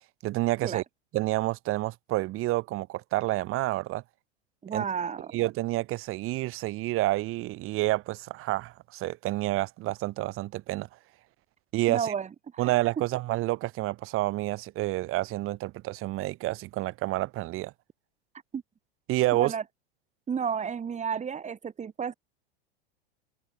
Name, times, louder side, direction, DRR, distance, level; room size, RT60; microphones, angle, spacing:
voice 1, 0.2-0.8 1.1-4.0 4.7-4.8 5.3-10.9 11.7-12.1 12.6-17.7 19.1-19.5, right 18 dB, 45° right, 7.5 m, -29 dB
voice 2, 4.6-5.3 11.9-12.3 12.5-12.7 18.5-18.6 19.3-19.6 20.3-22.1, right 7 dB, 20° right, 7.4 m, -31 dB
hypercardioid pair, 105°, 31 cm